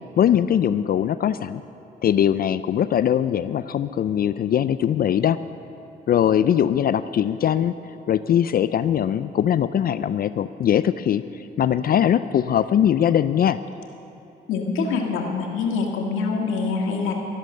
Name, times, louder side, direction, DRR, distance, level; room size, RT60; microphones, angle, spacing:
voice 1, 0.2-1.6 2.0-5.4 6.1-7.7 8.1-11.2 11.6-13.6, left 10 dB, 50° left, 14 dB, 0.4 m, -21 dB
voice 2, 14.5-17.1, left 4 dB, 85° left, 1 dB, 1.9 m, -25 dB
13.0 x 11.5 x 6.6 m, 3.0 s
cardioid pair, 90°, 20 cm